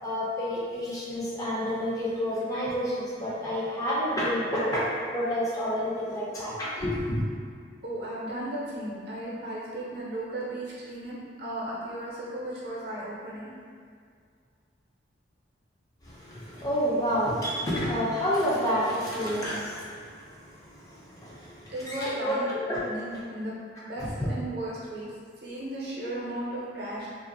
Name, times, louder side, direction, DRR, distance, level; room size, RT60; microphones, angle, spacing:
voice 1, 0.0-7.2 16.0-22.9 24.0-24.3, equal, 20° left, -7 dB, 0.4 m, -29 dB
voice 2, 7.8-13.5 16.5-16.6 17.7-17.8 21.7-23.5 23.9-25.1 25.4-27.2, right 1 dB, 60° right, -7 dB, 0.6 m, -35 dB
2.4 x 2.0 x 2.6 m, 2.1 s
head